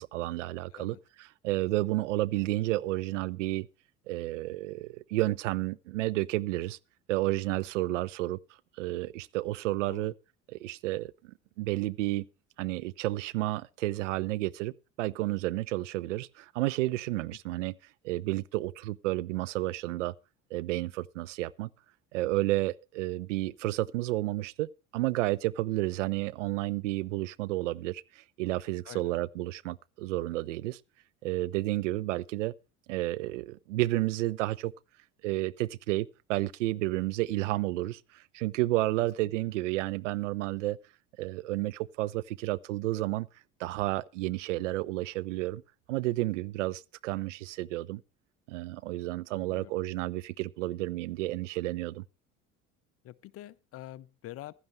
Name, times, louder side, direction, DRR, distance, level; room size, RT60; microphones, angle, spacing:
voice 1, 0.0-3.7 4.1-6.8 7.1-8.4 8.8-10.1 10.5-12.3 12.6-17.8 18.0-20.1 20.5-21.7 22.1-30.8 31.2-32.5 32.9-34.7 35.2-40.8 41.2-43.3 43.6-45.6 45.9-48.0 48.5-52.0, right 18 dB, 65° right, 0.6 m, -31 dB
voice 2, 28.9-29.2 39.0-39.1 39.4-39.5 49.3-49.7 53.0-54.5, left 14 dB, 35° left, 0.6 m, -46 dB
15.5 x 11.5 x 3.2 m
figure-of-eight pair, 60°, 40 cm